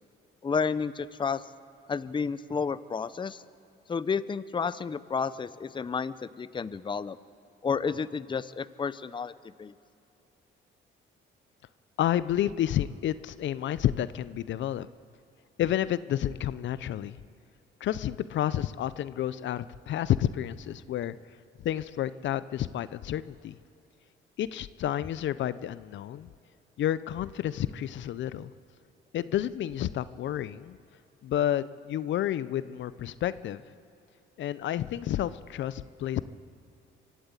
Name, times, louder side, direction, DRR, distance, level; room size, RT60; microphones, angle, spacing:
voice 1, 0.4-1.4 1.9-3.4 3.9-7.2 7.6-9.3 9.6-9.7, left 5 dB, 25° left, 15 dB, 0.6 m, -31 dB
voice 2, 12.0-14.9 15.6-17.2 17.8-21.1 21.6-23.6 24.4-26.3 26.8-28.5 29.1-30.8 31.2-33.6 34.4-36.2, left 11 dB, 70° left, 16 dB, 0.6 m, -30 dB
24.5 x 12.5 x 8.3 m, 2.8 s
cardioid pair, 90°, 20 cm